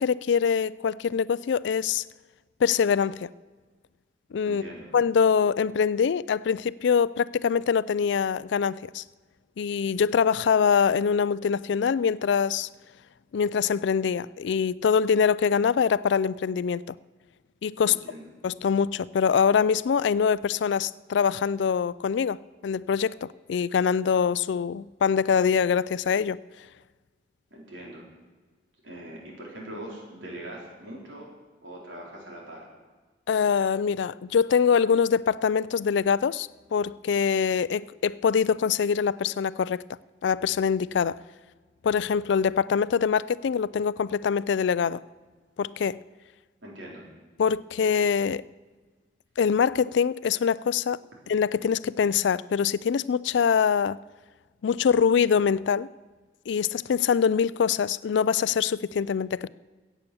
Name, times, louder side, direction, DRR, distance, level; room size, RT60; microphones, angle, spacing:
voice 1, 0.0-2.0 2.6-3.3 4.3-4.6 4.9-9.0 9.6-12.7 13.3-16.9 17.6-18.0 18.4-22.4 22.6-26.4 33.3-39.8 40.2-41.2 41.8-45.0 45.6-46.0 47.4-48.4 49.4-51.0 51.3-54.0 54.6-55.9 56.5-59.5, left 6 dB, 75° left, 0.3 m, -24 dB
voice 2, 4.4-4.9 17.9-18.3 27.5-28.1 28.8-31.3 31.6-32.7 46.6-47.0, right 1 dB, 85° right, 4.1 m, -41 dB
15.5 x 8.3 x 7.0 m
head